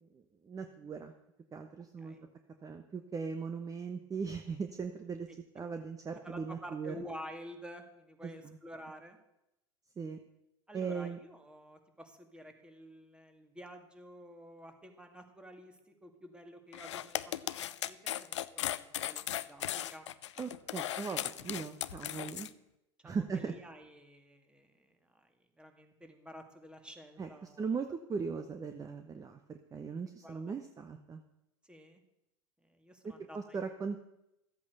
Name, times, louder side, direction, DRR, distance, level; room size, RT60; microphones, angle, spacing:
voice 1, 0.0-1.1 1.5-2.1 2.6-5.3 5.5-6.9 8.2-8.6 10.0-10.2 10.7-11.2 20.4-22.5 23.0-23.5 27.2-27.3 27.6-31.2 33.3-34.0, right 5 dB, 25° right, 7 dB, 1.0 m, -39 dB
voice 2, 5.3-5.6 6.2-9.2 10.7-20.1 23.0-27.6 30.0-30.5 31.6-32.0 32.6-33.6, equal, 5° right, 5 dB, 2.1 m, -51 dB
sound 1, 16.7-22.5, left 12 dB, 80° left, 0.5 m, -37 dB
13.5 x 8.4 x 6.7 m, 0.86 s
hypercardioid pair, 90°, 15 cm